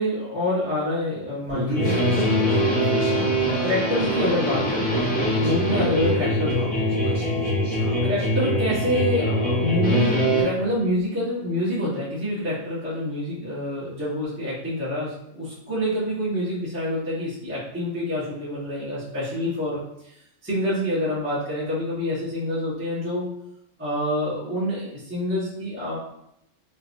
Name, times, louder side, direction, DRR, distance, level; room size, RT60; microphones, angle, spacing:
voice 1, 0.0-2.5 3.6-4.9 5.4-6.9 8.0-20.2 20.4-23.3 23.8-26.0, left 1 dB, 10° right, -12 dB, 1.0 m, -27 dB
Human voice, 1.5-8.3, equal, 45° left, 1.8 m, -37 dB
sound 1, 1.7-10.4, equal, 10° left, 0.7 m, -23 dB
3.4 x 2.9 x 2.6 m, 0.79 s
omnidirectional pair, 1.3 m